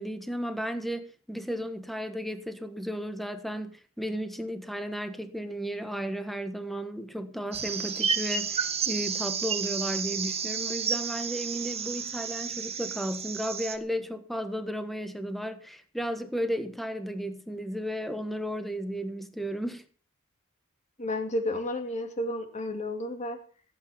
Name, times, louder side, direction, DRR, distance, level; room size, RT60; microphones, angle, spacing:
voice 1, 0.0-19.8, equal, ahead, 1.4 m, -34 dB
sound 1, 7.5-13.8, right 6 dB, 30° right, 1.5 m, -31 dB
voice 2, 21.0-23.4, left 1 dB, 35° left, 2.5 m, -31 dB
16.0 x 8.6 x 7.1 m
head